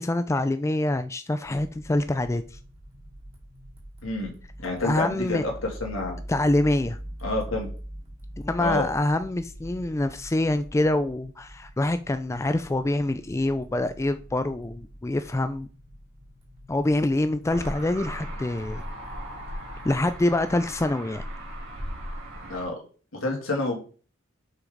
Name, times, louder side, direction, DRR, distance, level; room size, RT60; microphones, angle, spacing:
voice 1, 0.0-2.6 4.8-5.5 6.3-7.0 8.4-15.7 16.7-18.8 19.8-21.2, left 1 dB, 15° left, 0.3 m, -25 dB
sound 1, 1.4-20.9, equal, 30° right, 3.0 m, -44 dB
voice 2, 4.6-5.5 5.8-6.2 7.2-7.7 8.6-8.9 22.5-22.8 23.2-23.8, left 2 dB, 80° left, 2.8 m, -28 dB
sound 2, 17.5-22.7, equal, 80° right, 3.9 m, -37 dB
8.3 x 5.9 x 3.9 m
head